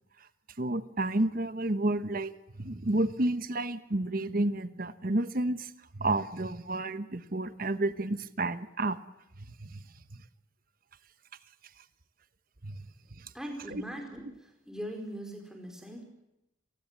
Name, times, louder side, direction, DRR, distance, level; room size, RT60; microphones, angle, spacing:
voice 1, 0.6-2.3 2.6-5.7 6.0-9.0 9.6-9.8 12.6-12.8 13.7-13.8, right 2 dB, 45° right, 12 dB, 1.1 m, -30 dB
voice 2, 13.3-16.0, equal, 5° right, 2 dB, 4.7 m, -41 dB
29.5 x 19.0 x 7.5 m, 0.85 s
head